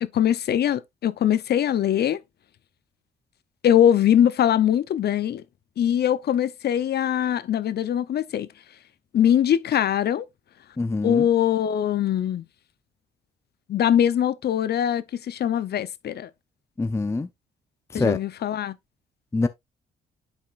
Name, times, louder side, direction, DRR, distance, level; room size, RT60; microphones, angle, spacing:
voice 1, 0.0-2.2 3.6-5.4 5.8-8.5 9.1-10.3 11.0-12.4 13.7-16.3 17.9-18.8, left 10 dB, 55° left, 0.6 m, -22 dB
voice 2, 10.8-11.3 16.8-17.3 17.9-18.2 19.3-19.5, left 3 dB, 15° left, 0.5 m, -24 dB
10.5 x 4.3 x 2.4 m
cardioid pair, 90°, 20 cm